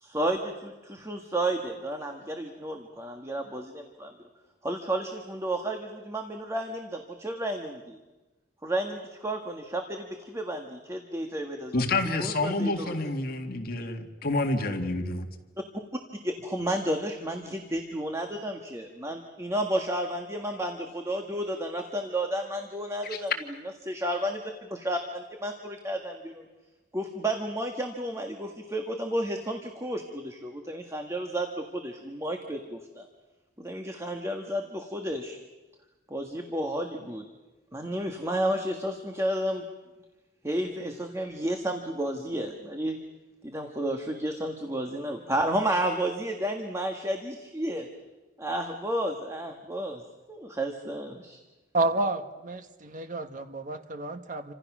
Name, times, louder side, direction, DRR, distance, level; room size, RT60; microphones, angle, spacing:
voice 1, 0.0-4.1 4.6-8.0 8.6-12.9 16.2-23.3 23.8-26.4 26.9-33.1 33.6-35.4 36.1-37.2 37.7-39.6 40.4-43.0 43.4-47.9 48.4-50.0 50.3-51.4, right 1 dB, 15° right, 3 dB, 1.7 m, -32 dB
voice 2, 11.7-15.3 23.1-23.2, left 2 dB, 55° left, 4 dB, 2.1 m, -28 dB
voice 3, 51.7-54.5, right 2 dB, 45° right, 7 dB, 1.5 m, -30 dB
29.5 x 26.0 x 6.2 m, 1.2 s
head